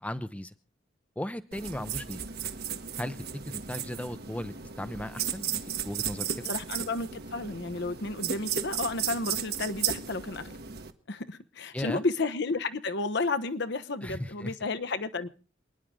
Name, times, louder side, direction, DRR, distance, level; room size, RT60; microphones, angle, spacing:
voice 1, 0.0-0.5 1.2-2.2 3.0-6.5 11.7-12.0 14.0-14.6, left 1 dB, 5° left, 0.6 m, -37 dB
sound 1, 1.5-10.9, right 8 dB, 55° right, 1.2 m, -35 dB
voice 2, 6.5-10.5 11.1-15.3, left 3 dB, 60° left, 1.0 m, -32 dB
28.0 x 10.0 x 3.7 m
head